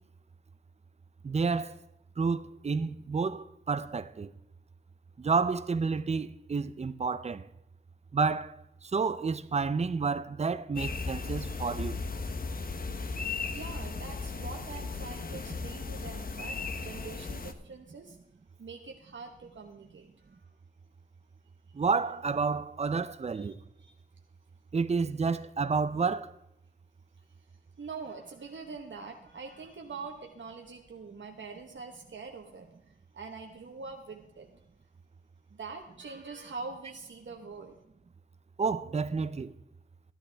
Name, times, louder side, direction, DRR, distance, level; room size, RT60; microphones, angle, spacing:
voice 1, 1.2-1.8 2.2-4.3 5.2-7.5 8.1-8.6 8.9-12.1 21.7-23.6 24.7-26.3 38.6-39.5, right 4 dB, 30° right, 0.5 m, -30 dB
sound 1, 10.8-17.5, left 4 dB, 45° left, 0.8 m, -36 dB
voice 2, 13.5-18.2 18.6-20.5 23.3-23.5 23.8-23.9 27.8-34.5 35.5-37.7, right 4 dB, 65° right, 1.1 m, -44 dB
14.0 x 11.0 x 3.4 m
wide cardioid pair, 115°, 21 cm